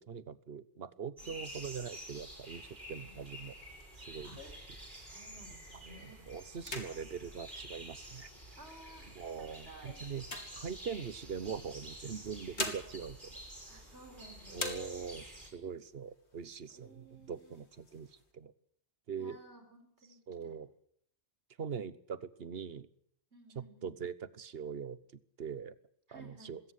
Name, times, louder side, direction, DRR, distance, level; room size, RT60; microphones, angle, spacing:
voice 1, 0.0-3.5 4.0-4.7 5.9-8.3 9.1-10.3 10.5-13.3 14.5-18.1 18.3-18.5 19.1-19.4 20.3-20.7 21.6-22.9 23.5-25.0 25.4-25.7 26.1-26.6, right 6 dB, 65° right, 16 dB, 1.2 m, -42 dB
sound 1, 1.2-15.5, right 1 dB, 45° right, 6.7 m, -50 dB
voice 2, 2.9-3.2 4.2-4.4 5.1-6.2 8.6-10.0 13.6-14.9 16.7-17.6 19.1-20.6 23.3-23.9 26.1-26.6, right 1 dB, 90° right, 6 dB, 4.9 m, -56 dB
sound 2, 3.3-5.5 6.0-6.2 6.5-8.5 9.1-11.3 12.2-14.2 14.5-15.4 15.8-15.9 16.2-16.9 17.3-18.2, left 2 dB, 80° left, 3.0 m, -45 dB
20.5 x 17.5 x 8.2 m, 0.67 s
omnidirectional pair, 1.1 m